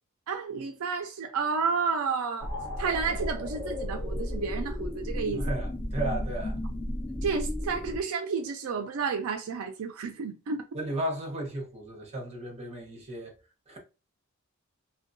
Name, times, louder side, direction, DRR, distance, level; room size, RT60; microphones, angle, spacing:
voice 1, 0.3-2.5 2.8-5.4 7.2-10.6, right 5 dB, 75° right, 0.4 m, -31 dB
sound 1, 2.4-8.0, left 1 dB, 20° left, 0.9 m, -33 dB
voice 2, 5.3-6.6 10.7-13.3 13.7-13.8, right 1 dB, 30° right, 0.8 m, -34 dB
2.7 x 2.2 x 2.5 m
head